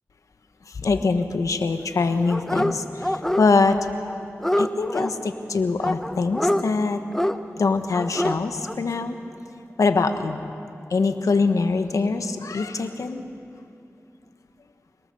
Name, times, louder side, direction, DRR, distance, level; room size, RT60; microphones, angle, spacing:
voice 1, 0.7-3.8 4.6-7.0 7.6-9.2 9.8-10.4 10.9-13.2, left 4 dB, 85° left, 8 dB, 1.2 m, -23 dB
Dog, 2.3-2.7 3.0-3.8 4.1-5.1 5.8-6.6 7.1-7.4 7.9-8.4 8.7-8.8, left 1 dB, 10° left, 0.8 m, -25 dB
26.0 x 19.0 x 6.9 m, 2.5 s
wide cardioid pair, 55°, 5 cm